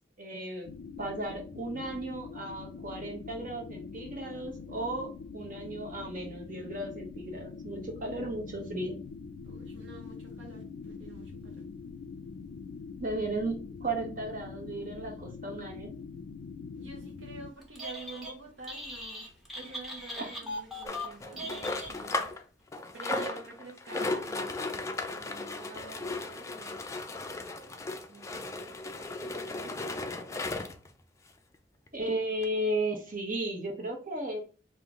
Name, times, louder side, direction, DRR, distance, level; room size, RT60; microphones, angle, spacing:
voice 1, 0.2-0.7 1.0-8.9 13.0-15.9 20.2-20.4 23.1-23.2 31.9-34.4, right 1 dB, 45° right, 1.3 m, -35 dB
sound 1, 0.6-17.5, left 5 dB, 90° left, 0.4 m, -44 dB
voice 2, 9.4-11.6 16.7-19.3 19.5-22.3 22.9-26.8 28.1-28.7 29.2-30.0, right 3 dB, 75° right, 0.8 m, -49 dB
Telephone, 17.6-18.4 18.6-22.3, left 1 dB, ahead, 0.9 m, -40 dB
sound 2, 20.8-22.4 22.7-30.9 31.5-31.6 31.9-32.0 32.4-32.5, left 2 dB, 15° left, 0.4 m, -36 dB
3.7 x 2.5 x 3.6 m
head